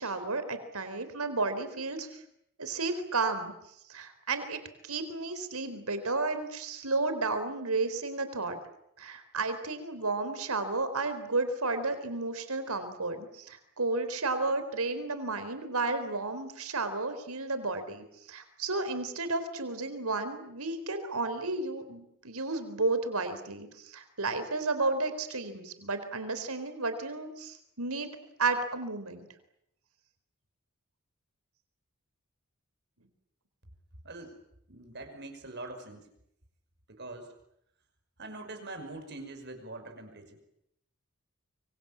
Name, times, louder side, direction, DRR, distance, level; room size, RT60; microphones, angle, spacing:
voice 1, 0.0-2.1 2.6-3.5 3.9-8.6 9.0-28.1 28.4-29.3, right 3 dB, 80° right, 10 dB, 4.1 m, -32 dB
voice 2, 34.0-34.3 34.7-36.1 36.9-37.3 38.2-40.4, right 2 dB, 50° right, 5 dB, 5.7 m, -43 dB
25.0 x 24.5 x 8.7 m, 0.75 s
head